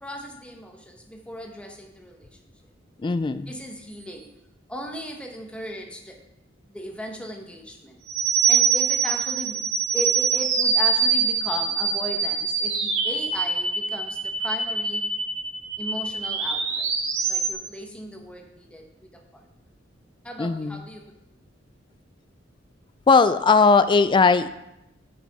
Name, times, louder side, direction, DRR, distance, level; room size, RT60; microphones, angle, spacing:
voice 1, 0.0-2.3 3.5-4.3 4.7-6.2 6.7-8.0 8.5-15.0 15.8-16.9 17.3-19.5 20.2-21.2, equal, 5° left, 2 dB, 1.1 m, -37 dB
voice 2, 3.0-3.5 20.4-20.8 23.1-24.5, left 4 dB, 25° left, 13 dB, 0.3 m, -18 dB
sound 1, 8.1-17.5, right 5 dB, 70° right, 1.8 m, -24 dB
9.1 x 6.1 x 4.1 m, 0.87 s
head